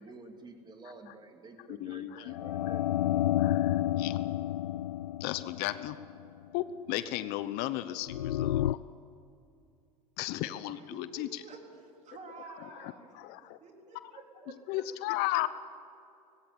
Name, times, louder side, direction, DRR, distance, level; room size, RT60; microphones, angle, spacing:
voice 1, 0.0-2.8, right 3 dB, 20° right, 5 dB, 2.7 m, -50 dB
voice 2, 1.8-2.3 3.4-4.2 5.2-6.0 6.5-8.8 10.2-11.3 12.8-13.6 14.7-15.5, left 15 dB, 55° left, 14 dB, 0.9 m, -35 dB
sound 1, 2.3-6.3 8.1-8.7, left 13 dB, 85° left, 0.4 m, -30 dB
voice 3, 10.7-13.1 13.6-14.8, right 4 dB, 35° right, 2 dB, 3.9 m, -50 dB
19.0 x 16.5 x 8.8 m, 2.6 s
hypercardioid pair, 90°, 19 cm